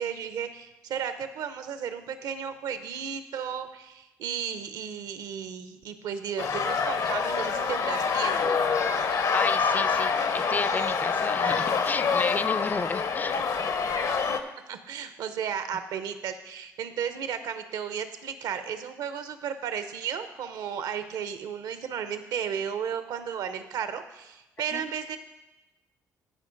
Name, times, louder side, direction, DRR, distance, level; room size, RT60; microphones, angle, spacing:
voice 1, 0.0-8.6 14.7-25.2, right 7 dB, 75° right, 10 dB, 0.7 m, -34 dB
sound 1, 6.4-14.4, left 5 dB, 60° left, 0.8 m, -26 dB
voice 2, 9.3-13.4 24.7-24.8, left 4 dB, 25° left, 16 dB, 0.4 m, -32 dB
13.5 x 5.0 x 3.9 m, 1.0 s
supercardioid pair, 60°, 7 cm